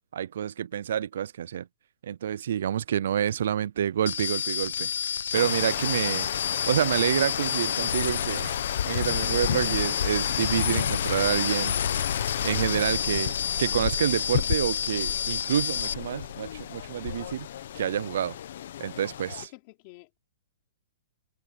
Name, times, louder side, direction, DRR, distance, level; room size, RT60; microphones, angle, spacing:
voice 1, 0.1-1.7 2.0-6.3 6.7-8.6 8.9-11.8 12.4-13.3 13.6-17.5 17.7-18.4 18.8-19.5, right 9 dB, 60° right, 0.3 m, -28 dB
sound 1, 4.1-15.9, left 8 dB, 85° left, 0.8 m, -30 dB
sound 2, 5.3-19.5, left 10 dB, 55° left, 1.0 m, -32 dB
voice 2, 19.4-20.2, left 24 dB, 30° left, 3.8 m, -49 dB
hypercardioid pair, 170°, 0 cm